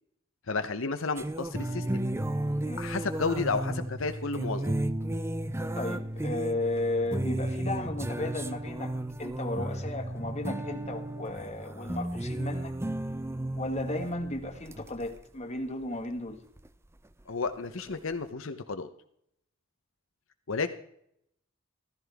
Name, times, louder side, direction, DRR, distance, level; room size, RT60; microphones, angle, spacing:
voice 1, 0.5-2.0 2.8-4.7 17.3-18.9 20.5-20.7, left 4 dB, 75° left, 9 dB, 0.9 m, -32 dB
sound 1, 1.2-15.2 16.6-16.7 17.8-18.0, right 1 dB, 15° right, 0.5 m, -33 dB
voice 2, 5.8-8.9 9.2-12.7 13.5-16.4, left 2 dB, 35° left, 4 dB, 1.7 m, -34 dB
15.0 x 14.5 x 3.5 m, 0.71 s
head